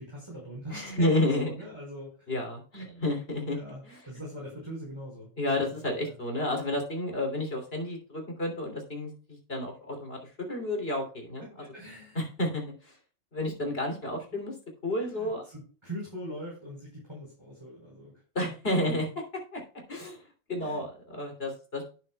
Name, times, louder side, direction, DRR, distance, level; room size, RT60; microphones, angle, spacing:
voice 1, 0.0-2.3 3.5-5.3 5.6-6.1 11.6-12.2 15.0-18.1 18.4-18.6 20.6-20.8, right 1 dB, 20° right, -4 dB, 5.1 m, -42 dB
voice 2, 0.7-1.5 2.3-3.6 3.8-4.0 5.4-11.6 12.1-12.9 13.3-14.5 14.8-15.4 18.3-19.1 19.5-19.6 19.9-20.2 20.5-21.8, left 1 dB, 55° left, 3 dB, 3.4 m, -31 dB
11.5 x 9.5 x 2.3 m, 0.38 s
omnidirectional pair, 1.2 m